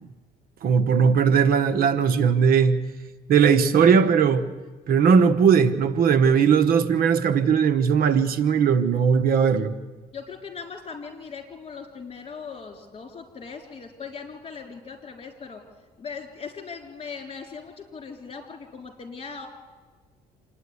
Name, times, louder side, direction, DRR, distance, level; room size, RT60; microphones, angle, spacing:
voice 1, 0.6-2.8 3.3-4.5 4.9-9.7, right 6 dB, 60° right, 1.0 m, -19 dB
voice 2, 10.1-15.6 16.0-19.5, left 5 dB, 35° left, 3.7 m, -39 dB
26.5 x 10.0 x 9.7 m
cardioid pair, 110°, 17 cm